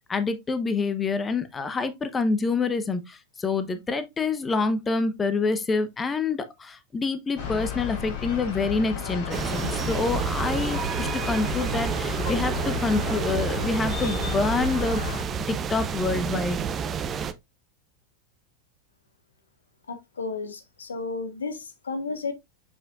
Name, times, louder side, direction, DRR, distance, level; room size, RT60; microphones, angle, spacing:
voice 1, 0.0-15.2 15.5-16.6, left 4 dB, 20° left, 1.0 m, -27 dB
sound 1, 7.4-15.2, left 8 dB, 55° left, 4.1 m, -33 dB
sound 2, 9.3-17.3, right 7 dB, 30° right, 0.8 m, -29 dB
voice 2, 19.9-22.3, left 4 dB, 80° left, 1.3 m, -33 dB
7.1 x 5.7 x 2.5 m
figure-of-eight pair, 95°, 0 cm